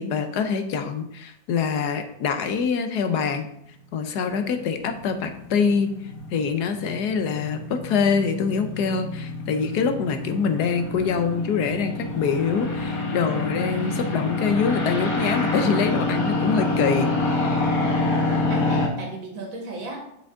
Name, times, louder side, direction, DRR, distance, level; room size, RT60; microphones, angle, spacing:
voice 1, 0.0-3.5 3.9-5.9 6.3-17.1, left 6 dB, 65° left, 7 dB, 1.1 m, -25 dB
sound 1, 4.4-18.9, left 2 dB, 50° left, 1.7 m, -27 dB
voice 2, 17.9-20.0, right 2 dB, 80° right, 0 dB, 2.5 m, -37 dB
8.1 x 6.2 x 3.6 m, 0.76 s
omnidirectional pair, 2.1 m